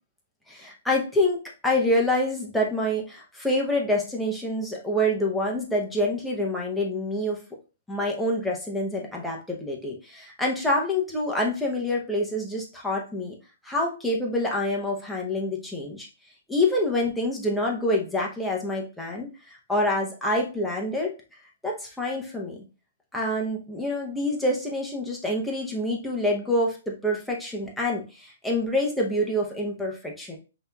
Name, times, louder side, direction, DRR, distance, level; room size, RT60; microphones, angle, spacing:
voice 1, 0.5-7.4 7.9-13.3 13.6-16.1 16.5-19.3 19.7-21.1 21.6-22.6 23.1-30.4, left 1 dB, ahead, -2 dB, 0.6 m, -26 dB
5.4 x 2.7 x 2.2 m, 0.32 s
hypercardioid pair, 170°, 0 cm